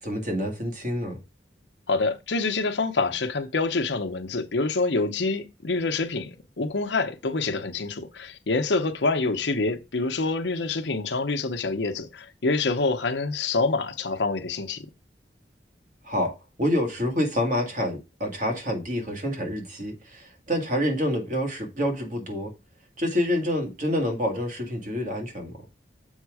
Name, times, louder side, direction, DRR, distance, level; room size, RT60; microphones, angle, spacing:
voice 1, 0.0-1.2 16.0-22.5 23.0-25.5, left 1 dB, 45° right, 1.9 m, -27 dB
voice 2, 1.9-14.9, left 3 dB, 90° left, 0.8 m, -26 dB
7.3 x 3.7 x 4.8 m
head